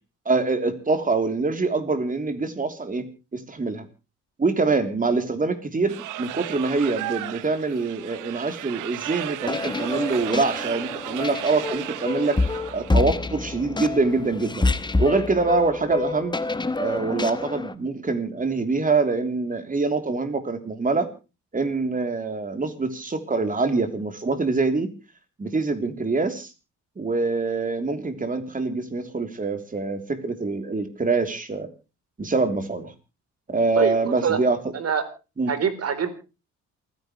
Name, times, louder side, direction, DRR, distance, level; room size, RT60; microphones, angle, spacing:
voice 1, 0.2-3.0 3.3-3.8 4.4-12.4 12.7-14.7 15.0-16.4 16.8-21.1 21.5-24.9 25.4-26.5 27.0-31.7 32.2-32.9 33.5-34.6 35.4-35.5, right 3 dB, 25° right, 8 dB, 3.3 m, -25 dB
sound 1, 5.9-12.9, right 15 dB, 85° right, 0.9 m, -35 dB
sound 2, 9.4-17.7, left 3 dB, 15° left, 1.1 m, -27 dB
voice 2, 33.8-34.4 34.7-35.0 35.5-36.2, right 7 dB, 55° right, 10 dB, 3.8 m, -25 dB
28.0 x 10.5 x 3.2 m, 0.31 s
cardioid pair, 90°, 30 cm